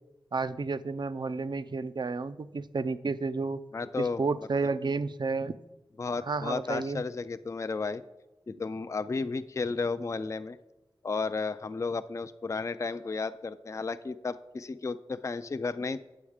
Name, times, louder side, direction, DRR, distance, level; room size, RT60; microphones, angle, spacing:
voice 1, 0.3-3.6 4.0-5.5 6.3-7.0, right 4 dB, 55° right, 14 dB, 0.4 m, -31 dB
voice 2, 3.7-4.2 6.0-8.0 8.5-10.6 11.0-16.0, left 4 dB, 35° left, 12 dB, 0.3 m, -33 dB
8.6 x 7.1 x 4.9 m, 1.0 s
wide cardioid pair, 70°, 9 cm